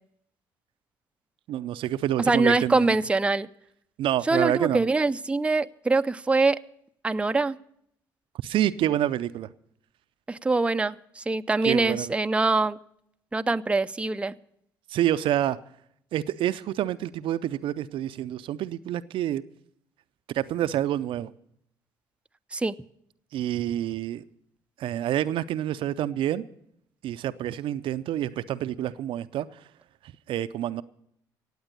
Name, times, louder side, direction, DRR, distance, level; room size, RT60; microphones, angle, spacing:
voice 1, 1.5-3.0 4.0-4.8 8.4-9.5 11.6-12.1 14.9-15.6 16.1-19.4 20.3-21.3 23.3-24.2 24.8-26.4 27.0-29.6 30.0-30.8, right 12 dB, 60° right, 0.5 m, -28 dB
voice 2, 2.3-3.5 4.3-6.6 7.0-7.6 10.3-12.8 13.3-14.3 22.5-22.7, right 3 dB, 10° right, 0.5 m, -24 dB
17.5 x 8.1 x 6.6 m
hypercardioid pair, 55°, 10 cm